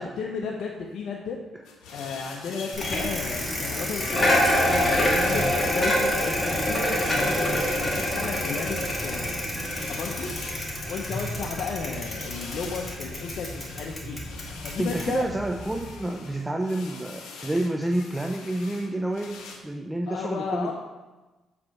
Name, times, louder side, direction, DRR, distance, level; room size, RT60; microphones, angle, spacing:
voice 1, 0.0-1.4 1.9-4.3 4.8-9.3 9.9-10.3 10.9-14.2 14.6-15.2 20.1-20.7, left 5 dB, 70° left, 0 dB, 0.8 m, -34 dB
sound 1, 1.6-19.6, left 4 dB, 85° left, 1.1 m, -43 dB
Bicycle, 2.7-15.9, left 1 dB, 25° left, 2.1 m, -27 dB
voice 2, 7.1-7.7 14.8-20.7, right 1 dB, 10° right, 3 dB, 0.5 m, -29 dB
7.5 x 4.8 x 4.8 m, 1.2 s
cardioid pair, 90°, 0 cm